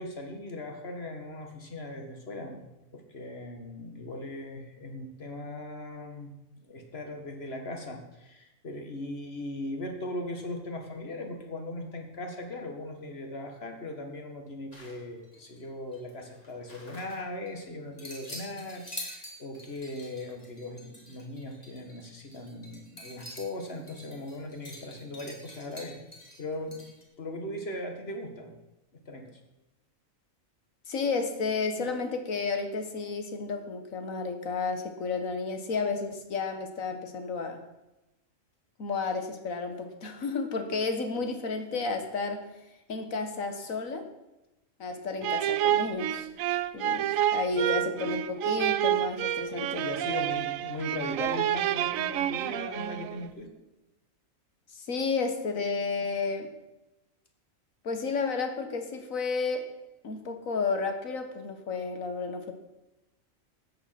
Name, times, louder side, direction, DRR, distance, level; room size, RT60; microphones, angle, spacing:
voice 1, 0.0-2.7 2.9-6.3 6.6-26.0 26.4-26.8 27.2-28.6 29.1-29.4 49.8-53.5, left 1 dB, 50° left, 4 dB, 2.1 m, -39 dB
sound 1, 14.7-15.6 15.9-17.5 18.0-27.0, left 1 dB, 30° left, 2.7 m, -46 dB
voice 2, 30.9-37.6 38.8-42.4 42.9-44.0 44.8-46.3 46.7-49.9 54.7-56.5 57.8-59.7 60.0-62.5, left 4 dB, 80° left, 7 dB, 1.9 m, -32 dB
sound 2, 45.2-53.3, right 12 dB, 80° right, 1.0 m, -29 dB
13.5 x 8.8 x 5.9 m, 0.98 s
omnidirectional pair, 1.4 m